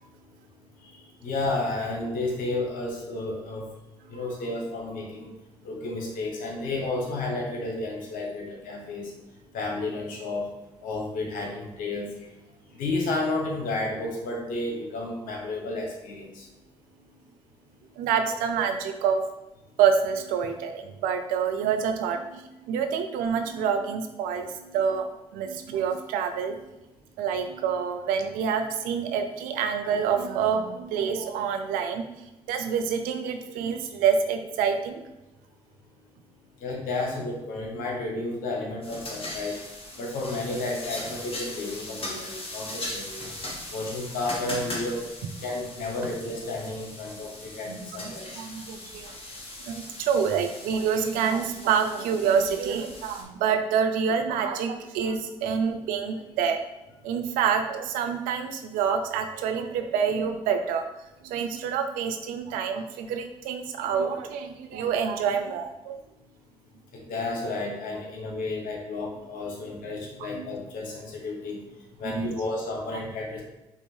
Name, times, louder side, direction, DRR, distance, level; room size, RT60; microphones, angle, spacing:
voice 1, 1.2-3.6 4.1-5.3 5.6-9.1 9.5-10.5 10.8-12.1 12.8-16.4 36.6-39.6 40.0-43.3 43.7-45.0 45.4-48.3 67.1-71.6 72.0-73.4, left 2 dB, 75° left, 0 dB, 1.0 m, -31 dB
voice 2, 18.0-19.2 19.8-25.0 25.3-26.6 27.2-32.0 32.5-35.0 37.8-37.9 47.7-49.1 49.6-56.6 57.0-60.8 61.2-66.0 69.5-69.6 70.3-70.5 72.0-72.3, right 7 dB, 80° right, 7 dB, 0.5 m, -27 dB
sound 1, 38.8-53.2, left 1 dB, 40° left, 1.2 m, -39 dB
5.4 x 2.5 x 3.2 m, 0.98 s
hypercardioid pair, 45°, 14 cm